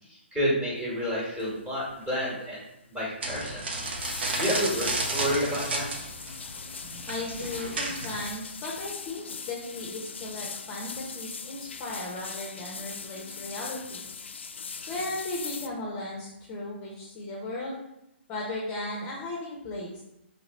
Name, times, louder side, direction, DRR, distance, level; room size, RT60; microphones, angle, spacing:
voice 1, 0.1-2.6 2.9-3.6 4.4-5.9, equal, 10° right, -6 dB, 1.3 m, -29 dB
sound 1, 1.4-1.6 1.9-2.2 2.5-2.6 3.5-15.7, left 5 dB, 70° left, 0.3 m, -40 dB
sound 2, 3.2-8.3, right 2 dB, 60° right, 0.8 m, -32 dB
voice 2, 7.1-14.0 14.9-17.7 18.3-20.0, left 2 dB, 25° left, -3 dB, 0.7 m, -36 dB
3.1 x 2.9 x 4.1 m, 0.85 s
figure-of-eight pair, 135°, 6 cm